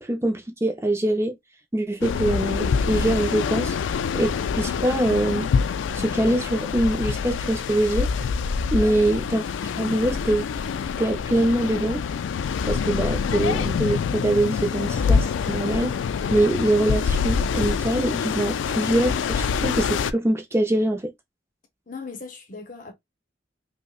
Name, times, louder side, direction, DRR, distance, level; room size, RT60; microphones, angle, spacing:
voice 1, 0.0-1.4 1.7-3.8 4.1-5.5 5.9-8.1 8.7-9.4 9.8-10.4 11.0-12.0 12.6-15.9 16.3-21.1, right 1 dB, 15° right, 0.5 m, -23 dB
sound 1, 2.0-20.1, left 6 dB, 90° left, 0.3 m, -26 dB
voice 2, 8.7-9.1 21.9-22.9, left 4 dB, 45° left, 0.9 m, -38 dB
5.3 x 2.1 x 2.3 m
head